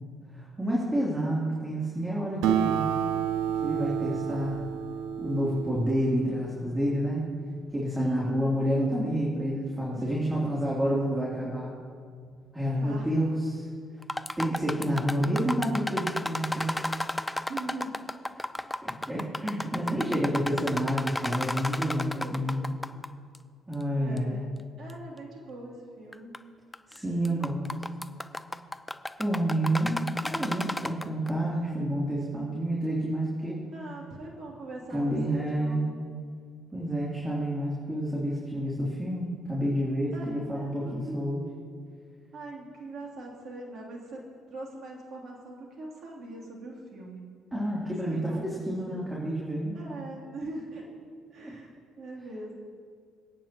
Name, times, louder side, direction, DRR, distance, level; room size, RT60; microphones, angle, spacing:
voice 1, 0.3-2.8 3.6-4.6 5.2-7.3 7.7-11.7 12.5-13.7 14.4-16.7 18.8-22.6 23.7-24.4 26.9-27.7 29.2-33.7 34.9-35.9 36.7-41.4 47.5-49.8 51.4-51.5, equal, 15° right, -6 dB, 3.1 m, -29 dB
Acoustic guitar, 2.4-7.3, right 9 dB, 70° right, 0.7 m, -30 dB
voice 2, 8.0-8.7 9.9-10.5 12.8-13.1 14.5-14.6 17.5-18.0 21.8-22.6 24.0-24.4 24.8-26.3 33.7-36.0 40.1-41.4 42.3-47.3 47.8-48.5 48.9-49.0 49.7-50.8 51.3-52.5, right 2 dB, 55° right, -2 dB, 3.2 m, -41 dB
sound 1, 14.0-23.1 23.3-23.4 24.2-24.3 24.9-25.0 26.1-26.4 26.7-27.0 27.2-31.3, left 1 dB, 10° left, 0.5 m, -33 dB
24.5 x 9.1 x 3.0 m, 2.1 s
hypercardioid pair, 50°, 0 cm